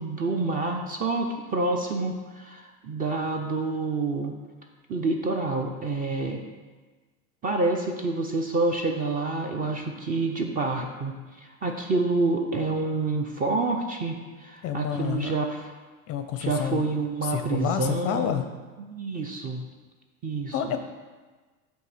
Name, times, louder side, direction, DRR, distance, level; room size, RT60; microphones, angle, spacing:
voice 1, 0.0-4.3 4.9-6.5 7.4-15.7 16.4-18.3 18.9-19.6 20.2-20.5, right 3 dB, 25° right, 3 dB, 0.4 m, -28 dB
voice 2, 14.6-15.3 16.1-16.9 17.2-18.5 20.5-20.8, left 9 dB, 35° left, 8 dB, 0.4 m, -29 dB
7.7 x 2.6 x 4.9 m, 1.3 s
supercardioid pair, 120°, 41 cm